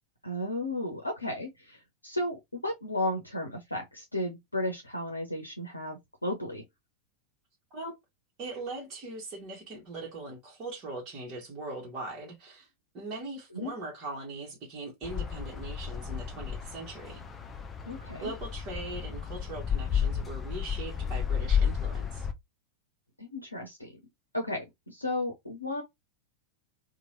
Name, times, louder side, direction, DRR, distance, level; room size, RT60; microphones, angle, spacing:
voice 1, 0.2-6.6 13.5-13.7 17.8-18.3 23.2-23.9 24.3-25.8, left 1 dB, 85° left, 0.6 m, -34 dB
voice 2, 8.4-12.7 12.9-17.2 18.2-22.3, right 2 dB, 35° right, 1.1 m, -40 dB
sound 1, 15.0-22.3, left 7 dB, 20° left, 0.5 m, -32 dB
2.9 x 2.2 x 2.9 m
figure-of-eight pair, 90°, 0 cm